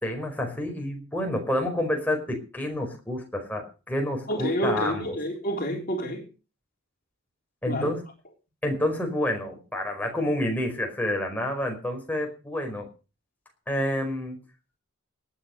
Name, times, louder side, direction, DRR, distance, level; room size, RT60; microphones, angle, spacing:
voice 1, 0.0-5.1 7.6-8.0 8.6-12.9 13.7-14.4, left 1 dB, 10° left, 4.9 m, -29 dB
voice 2, 4.3-6.3 7.7-7.9, equal, 45° left, 3.7 m, -28 dB
18.5 x 9.1 x 6.5 m
head